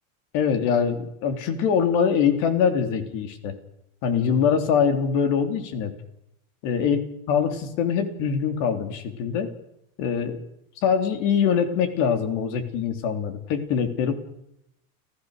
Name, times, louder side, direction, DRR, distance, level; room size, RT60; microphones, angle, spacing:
voice 1, 0.3-3.6 4.0-5.9 6.6-7.0 7.3-9.5 10.0-10.4 10.8-14.1, left 7 dB, 45° left, 8 dB, 3.3 m, -23 dB
29.0 x 15.5 x 6.7 m, 0.80 s
supercardioid pair, 160°, 42 cm